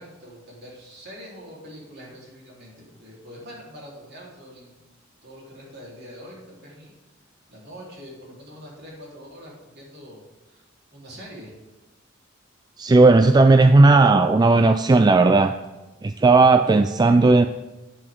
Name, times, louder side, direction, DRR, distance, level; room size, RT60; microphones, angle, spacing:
voice 1, 0.0-4.8 5.2-6.9 7.5-11.6, equal, 55° right, -4 dB, 4.0 m, -44 dB
voice 2, 12.8-15.6 16.0-17.5, right 3 dB, 20° right, 9 dB, 0.3 m, -15 dB
13.5 x 9.9 x 3.8 m, 1.1 s
head